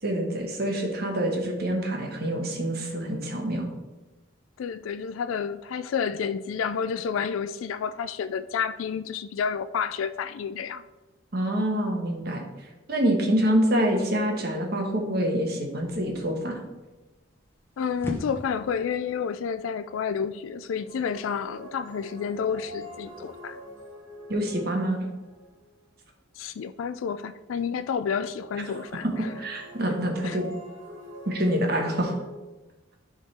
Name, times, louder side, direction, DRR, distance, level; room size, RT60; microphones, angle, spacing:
voice 1, 0.0-3.7 11.3-12.4 12.9-16.6 24.3-25.1 29.4-30.5 31.3-32.1, right 1 dB, 50° right, 1.3 m, -26 dB
voice 2, 4.6-10.8 17.8-23.6 26.4-29.3 30.2-30.4, left 6 dB, 85° left, 0.3 m, -30 dB
sound 1, 15.7-23.3, equal, 10° left, 0.9 m, -43 dB
sound 2, 20.7-25.7 28.3-32.3, equal, 75° right, 1.8 m, -44 dB
11.5 x 3.8 x 4.3 m
head